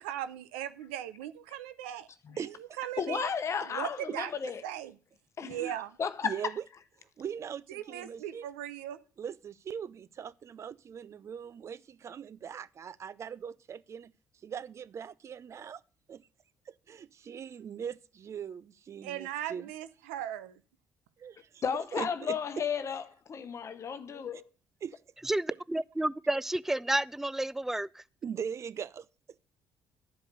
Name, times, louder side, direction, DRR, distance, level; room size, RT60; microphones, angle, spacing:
voice 1, 0.0-2.1 2.4-3.3 3.6-4.3 4.6-4.9 5.4-5.9 7.7-9.0 19.0-20.5, right 11 dB, 85° right, 0.6 m, -38 dB
voice 2, 2.4-3.1 4.1-4.2 5.5-5.7 6.2-6.6 7.2-8.5 9.2-14.1 14.4-15.8 16.1-16.3 16.7-19.6 21.2-22.6 24.3-24.4 24.8-25.0 28.2-29.1, right 7 dB, 50° right, 0.6 m, -41 dB
voice 3, 3.0-4.6 5.4-5.6 6.0-6.3 21.6-23.0 23.3-24.4, left 7 dB, 45° left, 0.9 m, -33 dB
voice 4, 25.3-27.9, right 1 dB, 5° right, 0.4 m, -30 dB
11.5 x 5.1 x 6.6 m
hypercardioid pair, 55°, 7 cm